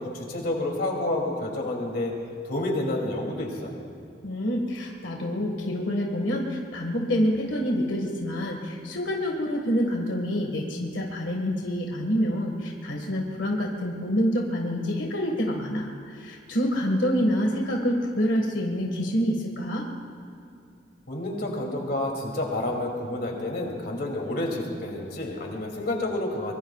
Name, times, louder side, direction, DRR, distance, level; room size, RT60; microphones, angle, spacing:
voice 1, 0.0-2.1 2.4-3.8 21.1-26.5, left 1 dB, 55° left, 0 dB, 2.8 m, -29 dB
voice 2, 4.2-19.9, equal, 90° left, 0 dB, 1.8 m, -27 dB
24.0 x 22.5 x 2.4 m, 2.5 s
head